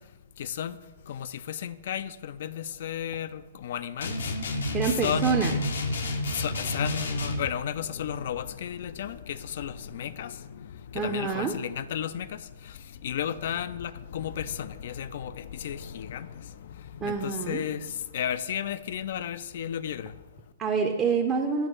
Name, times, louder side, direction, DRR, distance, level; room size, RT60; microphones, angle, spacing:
voice 1, 0.0-20.5, left 9 dB, 60° left, 0.4 m, -34 dB
sound 1, 4.0-7.5, left 1 dB, 80° left, 0.8 m, -30 dB
voice 2, 4.7-5.5 10.9-11.5 17.0-17.6 20.6-21.7, right 5 dB, 25° right, 0.6 m, -26 dB
8.8 x 2.9 x 5.4 m
hypercardioid pair, 125°, 0 cm